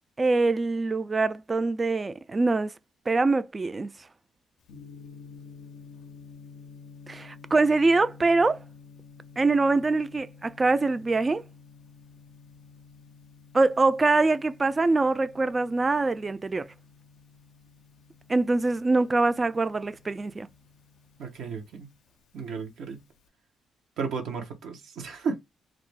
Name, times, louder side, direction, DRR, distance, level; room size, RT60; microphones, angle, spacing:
voice 1, 0.2-2.7 3.1-3.9 7.1-8.6 9.4-11.4 13.5-16.7 18.3-20.5, right 3 dB, 30° right, 0.3 m, -24 dB
Gong, 4.6-23.3, left 5 dB, 80° left, 0.4 m, -51 dB
voice 2, 21.2-21.9 22.3-23.0 24.0-25.4, right 5 dB, 75° right, 0.7 m, -33 dB
2.4 x 2.0 x 3.2 m
supercardioid pair, 60°, 0 cm